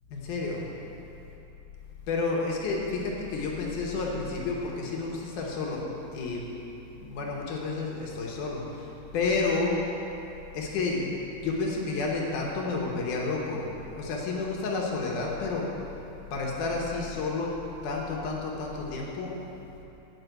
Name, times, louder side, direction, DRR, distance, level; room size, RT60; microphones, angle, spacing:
voice 1, 0.1-0.6 2.1-5.8 6.1-6.4 7.0-8.8 9.1-9.7 10.5-11.1 11.4-15.6 16.3-17.5 17.8-19.3, left 3 dB, 65° left, -2 dB, 2.2 m, -30 dB
9.5 x 5.5 x 7.9 m, 3.0 s
omnidirectional pair, 4.6 m